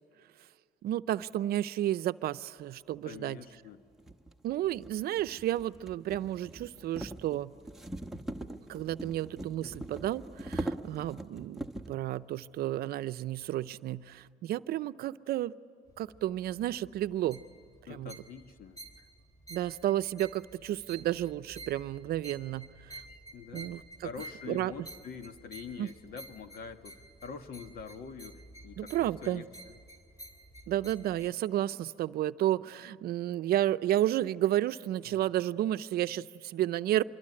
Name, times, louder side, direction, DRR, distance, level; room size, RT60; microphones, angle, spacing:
voice 1, 0.8-3.4 4.4-7.5 8.7-15.5 16.0-17.4 17.9-18.1 19.5-23.0 23.5-24.1 24.5-24.7 25.8-25.9 28.8-29.4 30.7-37.0, right 13 dB, 65° right, 12 dB, 0.6 m, -32 dB
voice 2, 3.0-3.8 9.6-9.9 17.9-18.8 23.3-23.7 24.0-29.5 35.0-35.3, left 6 dB, 65° left, 8 dB, 1.7 m, -45 dB
sound 1, 3.2-3.3 4.0-12.0, right 1 dB, ahead, 1.1 m, -41 dB
sound 2, 15.9-31.3, right 2 dB, 20° left, 3.3 m, -51 dB
25.5 x 23.0 x 9.8 m, 2.3 s
cardioid pair, 110°, 17 cm